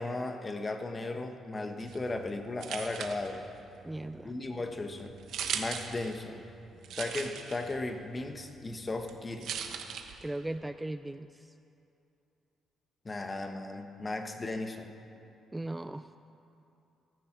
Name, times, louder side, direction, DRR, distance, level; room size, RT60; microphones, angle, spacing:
voice 1, 0.0-3.4 4.2-5.1 5.5-6.4 7.0-9.5 13.0-15.0, left 2 dB, 25° left, 6 dB, 1.3 m, -36 dB
sound 1, 1.8-10.6, right 7 dB, 75° right, 1.2 m, -42 dB
voice 2, 3.8-4.3 10.2-11.5 15.5-16.2, right 1 dB, 10° right, 10 dB, 0.4 m, -38 dB
14.5 x 13.5 x 6.1 m, 2.7 s
cardioid pair, 90°, 0 cm